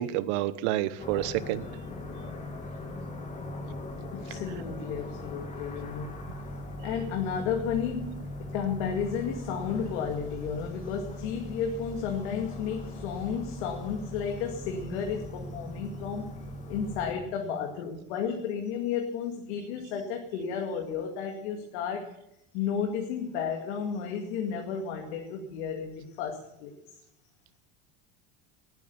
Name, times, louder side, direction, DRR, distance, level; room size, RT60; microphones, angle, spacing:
voice 1, 0.0-1.7 4.3-4.4, right 14 dB, 75° right, 15 dB, 1.1 m, -29 dB
sound 1, 1.0-17.1, left 1 dB, 20° left, 2.2 m, -40 dB
voice 2, 4.1-6.2 6.8-16.3 16.7-22.1 22.5-27.0, left 7 dB, 80° left, 2 dB, 2.3 m, -33 dB
19.5 x 9.4 x 7.0 m, 0.83 s
cardioid pair, 155°, 34 cm